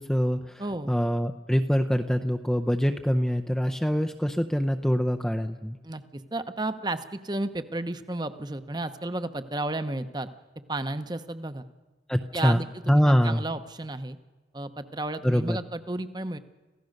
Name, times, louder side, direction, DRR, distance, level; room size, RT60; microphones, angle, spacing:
voice 1, 0.0-0.6 0.9-5.8 12.1-13.4 15.2-15.6, equal, 5° left, 6 dB, 0.6 m, -24 dB
voice 2, 0.6-1.0 5.8-10.3 10.7-11.7 12.3-14.2 14.5-16.4, right 2 dB, 25° right, 10 dB, 0.9 m, -33 dB
27.0 x 16.0 x 6.6 m, 1.2 s
head